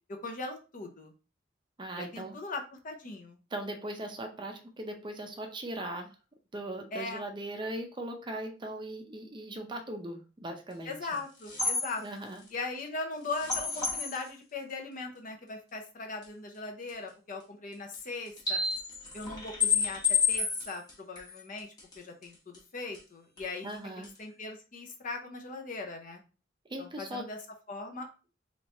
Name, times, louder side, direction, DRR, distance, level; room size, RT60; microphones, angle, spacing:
voice 1, 0.1-1.1 2.0-3.4 6.9-7.3 10.8-12.0 12.5-18.6 19.1-21.7 22.0-23.7 24.0-26.2 26.8-27.4 27.7-28.1, left 3 dB, 45° left, 3 dB, 0.7 m, -39 dB
voice 2, 1.8-2.3 3.5-6.1 6.5-10.9 12.0-12.4 23.6-24.1 26.7-27.3, right 1 dB, 25° right, 4 dB, 0.5 m, -39 dB
sound 1, 11.2-11.3 11.4-11.9 13.3-14.2 16.2-16.3 16.9-17.0 17.9-18.0 18.3-21.9 22.2-22.3 22.5-22.6 22.9-23.0 23.4-23.7 24.0-24.1, left 5 dB, 20° left, 1.1 m, -30 dB
3.2 x 3.1 x 2.5 m, 0.33 s
head